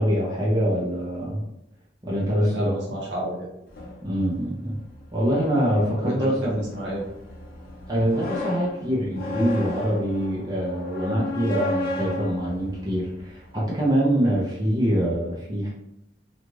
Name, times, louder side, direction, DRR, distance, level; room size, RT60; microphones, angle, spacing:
voice 1, 0.0-1.4 2.0-2.8 4.0-4.8 5.1-6.6 7.9-15.7, equal, 20° right, -5 dB, 0.7 m, -24 dB
voice 2, 2.3-3.5 6.0-7.0, right 1 dB, 70° right, -4 dB, 1.0 m, -31 dB
sound 1, 3.7-13.6, left 2 dB, 55° left, 0.7 m, -35 dB
2.5 x 2.4 x 3.1 m, 0.82 s
head